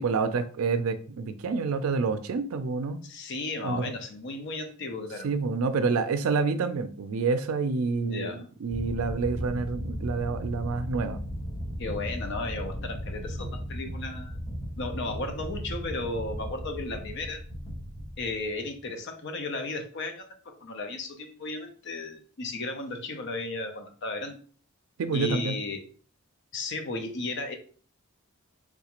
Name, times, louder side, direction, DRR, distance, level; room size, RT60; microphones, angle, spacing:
voice 1, 0.0-3.0 3.6-3.9 5.2-11.2 25.0-25.6, right 4 dB, 80° right, 0.4 m, -28 dB
voice 2, 3.0-5.3 7.9-8.4 11.8-14.4 14.8-17.4 18.2-24.4 25.1-25.8 26.5-27.5, left 2 dB, 55° left, 0.6 m, -35 dB
sound 1, 8.7-18.8, equal, 20° left, 1.0 m, -36 dB
3.5 x 2.4 x 2.9 m
head